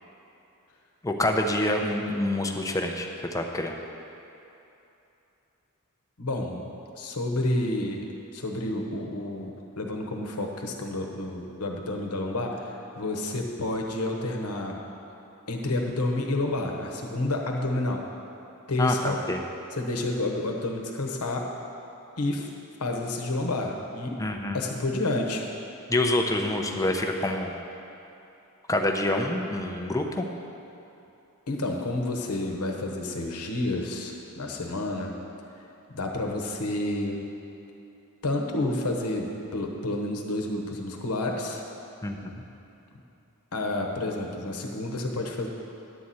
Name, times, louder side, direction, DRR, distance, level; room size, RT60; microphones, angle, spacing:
voice 1, 1.0-3.8 18.8-19.4 24.2-24.6 25.9-27.5 28.7-30.3 42.0-42.3, left 1 dB, 15° left, 3 dB, 0.6 m, -27 dB
voice 2, 6.2-6.7 7.0-8.1 8.3-14.8 15.5-18.0 18.7-19.2 19.7-21.5 22.2-22.5 22.8-24.2 24.5-25.4 31.5-35.1 35.9-37.2 38.2-41.6 43.5-45.5, left 2 dB, 85° left, 2 dB, 1.1 m, -30 dB
11.0 x 4.2 x 7.7 m, 2.9 s
head